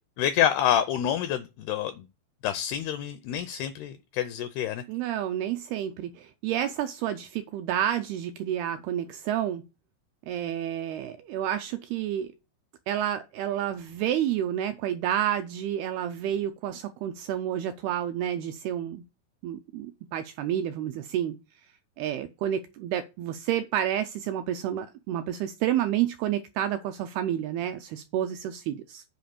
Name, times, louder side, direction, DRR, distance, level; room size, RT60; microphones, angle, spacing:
voice 1, 0.2-2.1 2.4-4.8, left 10 dB, 85° left, 2.3 m, -27 dB
voice 2, 4.9-9.6 10.3-12.3 12.9-19.0 19.4-21.4 22.0-29.0, right 11 dB, 85° right, 2.2 m, -30 dB
7.7 x 4.9 x 7.0 m
omnidirectional pair, 5.1 m